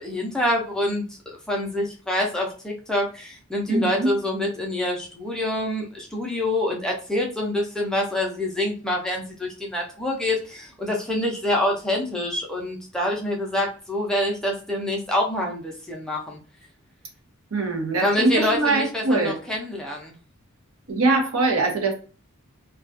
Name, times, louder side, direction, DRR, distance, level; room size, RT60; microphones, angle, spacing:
voice 1, 0.0-16.4 18.0-20.1, left 1 dB, 5° left, -2 dB, 0.4 m, -26 dB
voice 2, 3.7-4.1 17.5-19.4 20.9-21.9, right 2 dB, 75° right, 2 dB, 0.7 m, -22 dB
2.3 x 2.2 x 2.4 m, 0.37 s
head